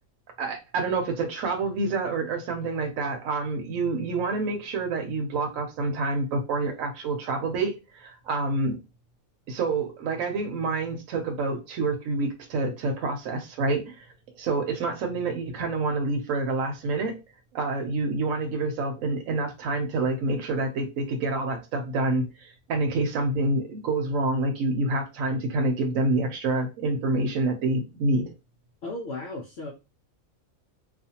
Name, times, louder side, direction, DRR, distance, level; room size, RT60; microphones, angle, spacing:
voice 1, 0.4-8.8 9.5-14.0 14.4-17.2 17.5-28.3, right 2 dB, 75° right, 1.0 m, -27 dB
voice 2, 28.8-29.7, left 2 dB, 60° left, 0.7 m, -35 dB
2.4 x 2.4 x 2.8 m
omnidirectional pair, 1.4 m